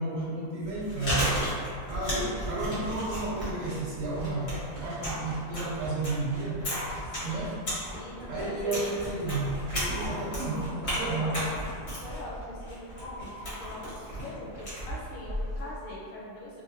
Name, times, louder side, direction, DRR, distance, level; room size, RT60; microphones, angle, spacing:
voice 1, 0.0-1.4 1.9-6.6 7.2-7.6 8.3-11.6, right 2 dB, 70° right, -6 dB, 1.0 m, -32 dB
Chewing mastication, 0.7-15.7, equal, 55° left, 1.2 m, -34 dB
sound 1, 6.7-7.9 9.7-11.0 12.9-14.2, left 1 dB, 30° left, 1.0 m, -46 dB
voice 2, 7.0-9.0 11.0-16.6, left 1 dB, 80° left, -5 dB, 1.1 m, -42 dB
2.7 x 2.6 x 2.7 m, 2.3 s
omnidirectional pair, 1.4 m